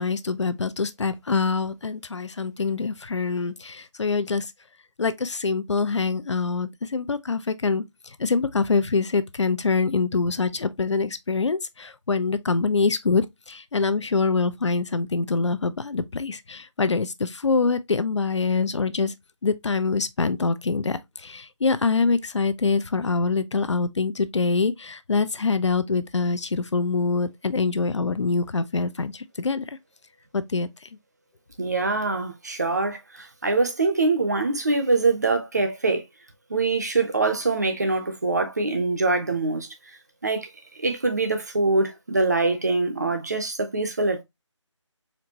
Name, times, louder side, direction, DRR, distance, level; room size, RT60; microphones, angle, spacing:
voice 1, 0.0-4.5 5.0-19.1 19.4-29.8 30.3-30.9, left 4 dB, 65° left, 0.5 m, -25 dB
voice 2, 31.6-36.0 36.5-39.7 40.2-40.5 40.8-44.2, right 3 dB, 35° right, 0.6 m, -24 dB
4.4 x 2.5 x 2.8 m
figure-of-eight pair, 170°, 16 cm